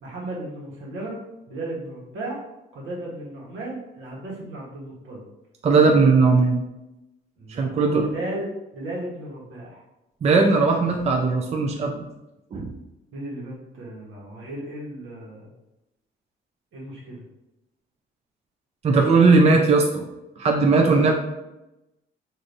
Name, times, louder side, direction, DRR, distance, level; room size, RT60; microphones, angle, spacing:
voice 1, 0.0-1.2 1.5-2.4 2.7-5.2 7.4-8.5 8.7-9.8 13.1-15.5 16.7-17.2 20.7-21.1, right 1 dB, 80° right, -3 dB, 1.2 m, -35 dB
voice 2, 5.6-6.6 7.6-8.1 10.2-12.0 12.5-12.7 18.8-20.0 20.4-21.1, right 4 dB, 35° right, 1 dB, 0.4 m, -18 dB
3.3 x 2.6 x 2.6 m, 0.93 s
cardioid pair, 90°, 20 cm